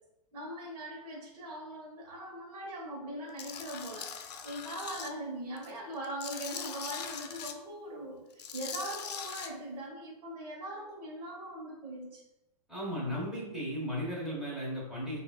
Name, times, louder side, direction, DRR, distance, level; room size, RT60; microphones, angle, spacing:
voice 1, 0.3-12.2, right 1 dB, 75° right, -4 dB, 1.2 m, -41 dB
Tools, 3.4-5.1 5.6-7.5 8.3-9.5, left 7 dB, 85° left, 0.5 m, -41 dB
voice 2, 12.7-15.2, equal, ahead, -8 dB, 1.2 m, -35 dB
5.9 x 2.7 x 2.3 m, 0.95 s
supercardioid pair, 165°, 20 cm